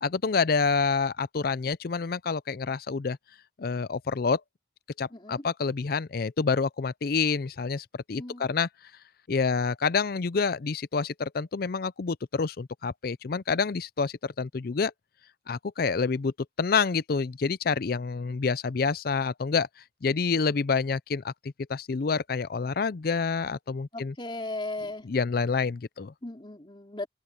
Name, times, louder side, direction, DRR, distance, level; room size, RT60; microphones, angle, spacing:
voice 1, 0.0-3.2 3.6-4.4 5.0-8.7 9.3-14.9 15.5-16.3 16.6-19.7 20.0-21.3 21.7-24.1 25.0-26.1, left 5 dB, 55° left, 0.5 m, -27 dB
voice 2, 5.1-5.4 8.1-8.5 23.9-25.0 26.2-27.1, left 2 dB, 25° left, 3.1 m, -36 dB
head